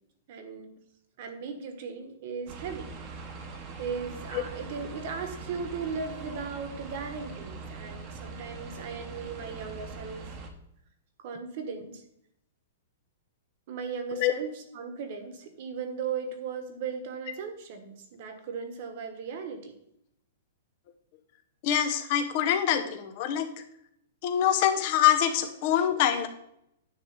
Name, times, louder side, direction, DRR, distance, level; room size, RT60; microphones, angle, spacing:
voice 1, 0.3-0.8 1.2-2.9 3.5-10.3 11.2-12.0 13.7-19.7, right 5 dB, 45° right, 7 dB, 1.4 m, -37 dB
sound 1, 2.5-10.5, right 4 dB, 25° right, 1.1 m, -42 dB
voice 2, 21.6-23.5 24.2-26.3, left 10 dB, 40° left, 7 dB, 0.9 m, -25 dB
10.0 x 3.4 x 6.7 m, 0.75 s
hypercardioid pair, 160°, 0 cm